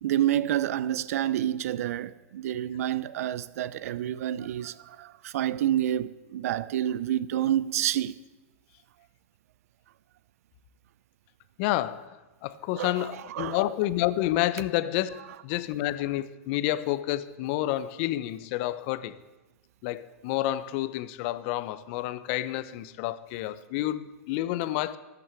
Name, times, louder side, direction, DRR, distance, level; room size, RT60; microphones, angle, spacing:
voice 1, 0.0-8.2 12.8-13.6, right 12 dB, 70° right, 0.5 m, -28 dB
voice 2, 11.6-12.2 12.4-19.2 19.8-25.0, left 15 dB, 50° left, 0.7 m, -29 dB
14.0 x 6.1 x 8.1 m
hypercardioid pair, 120°, 8 cm